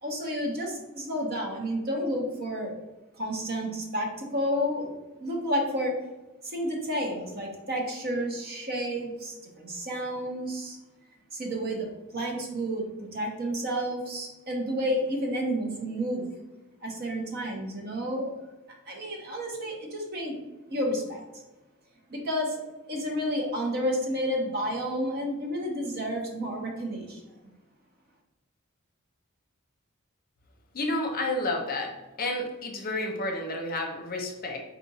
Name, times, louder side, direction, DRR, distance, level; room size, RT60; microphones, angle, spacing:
voice 1, 0.0-2.7 3.1-4.9 5.2-5.9 6.4-10.8 11.3-11.9 12.1-12.9 13.1-16.2 16.8-18.3 18.9-20.4 20.7-21.2 22.1-22.6 22.9-27.3, equal, 50° right, 0 dB, 0.9 m, -30 dB
voice 2, 30.7-31.9 32.2-34.6, left 2 dB, 45° left, 2 dB, 0.7 m, -30 dB
4.3 x 2.5 x 4.1 m, 1.0 s
head